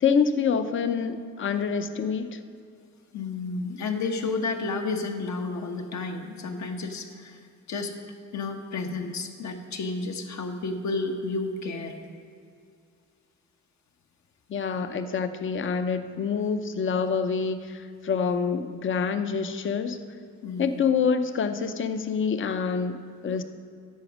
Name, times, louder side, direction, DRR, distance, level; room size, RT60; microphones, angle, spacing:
voice 1, 0.0-2.4 14.5-20.0 20.6-23.4, left 6 dB, 40° left, 10 dB, 0.6 m, -26 dB
voice 2, 3.1-7.4 7.7-7.9 8.3-11.9 20.4-20.8, left 3 dB, 65° left, 4 dB, 1.2 m, -31 dB
10.5 x 6.9 x 6.2 m, 2.3 s
cardioid pair, 115°, 31 cm